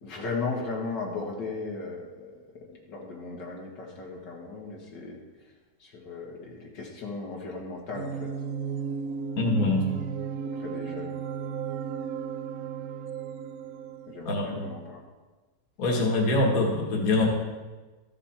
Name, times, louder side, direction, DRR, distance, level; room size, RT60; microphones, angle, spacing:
voice 1, 0.0-2.3 2.7-5.2 5.8-8.3 10.6-11.2 14.1-15.1, left 3 dB, 85° left, -2 dB, 2.2 m, -36 dB
sound 1, 7.9-14.5, right 6 dB, 70° right, 0.9 m, -35 dB
voice 2, 9.4-9.9 14.3-14.7 15.8-17.3, left 2 dB, 55° left, -1 dB, 2.0 m, -24 dB
13.5 x 6.5 x 4.4 m, 1.2 s
omnidirectional pair, 1.8 m